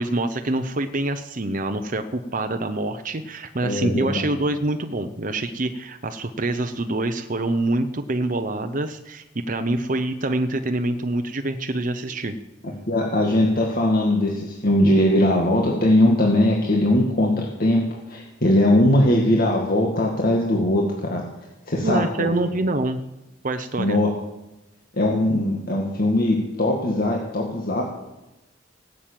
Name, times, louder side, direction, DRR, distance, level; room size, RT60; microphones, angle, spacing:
voice 1, 0.0-12.3 21.8-23.0 23.4-24.0, right 2 dB, 45° right, 7 dB, 0.9 m, -25 dB
voice 2, 3.6-4.4 12.9-17.8 18.1-21.2 21.7-22.5 23.8-24.1 24.9-27.8, left 1 dB, 50° left, -1 dB, 2.1 m, -20 dB
18.5 x 7.5 x 8.8 m, 0.98 s
head